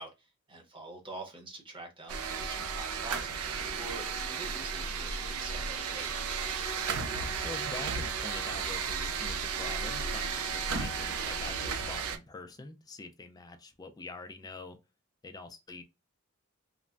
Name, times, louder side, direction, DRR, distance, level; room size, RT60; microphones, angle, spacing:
voice 1, 0.0-3.4 3.8-6.5, right 2 dB, 25° right, 0.9 m, -46 dB
sound 1, 2.1-12.2, right 5 dB, 80° right, 0.4 m, -34 dB
voice 2, 7.4-14.8 15.2-15.8, left 3 dB, 20° left, 0.3 m, -45 dB
3.2 x 2.1 x 2.4 m
head